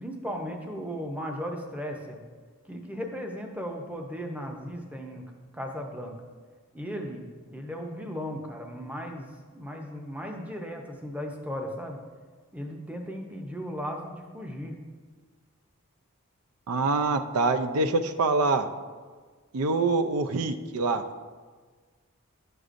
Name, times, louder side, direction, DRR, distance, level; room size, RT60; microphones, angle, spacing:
voice 1, 0.0-2.2 2.7-5.3 5.5-6.2 6.7-12.0 12.5-14.8, equal, 5° right, 2 dB, 0.6 m, -36 dB
voice 2, 16.7-18.7 19.5-21.0, right 3 dB, 85° right, 8 dB, 0.5 m, -25 dB
10.5 x 6.6 x 2.5 m, 1.5 s
head